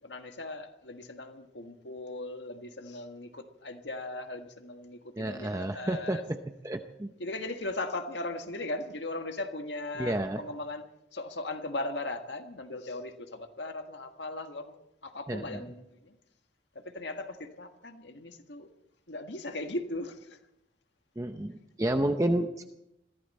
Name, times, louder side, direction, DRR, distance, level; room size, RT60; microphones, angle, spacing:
voice 1, 0.0-6.2 7.2-10.8 11.1-16.2 16.7-18.7 19.1-20.4, left 2 dB, 80° left, 6 dB, 1.7 m, -38 dB
voice 2, 5.2-6.2 6.6-7.1 10.0-10.4 15.3-15.6 21.2-22.7, right 1 dB, 20° right, 6 dB, 0.7 m, -30 dB
21.5 x 15.0 x 4.3 m, 0.85 s
head